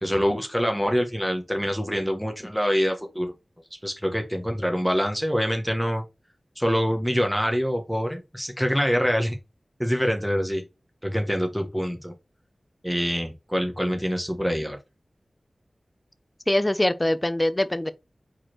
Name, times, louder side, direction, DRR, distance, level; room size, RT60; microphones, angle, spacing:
voice 1, 0.0-3.3 3.8-6.0 6.6-9.4 9.8-10.6 11.0-12.1 12.8-14.8, equal, ahead, 1.4 m, -25 dB
voice 2, 16.5-17.9, left 1 dB, 20° left, 0.7 m, -23 dB
5.2 x 4.2 x 4.3 m
wide cardioid pair, 55°, 0 cm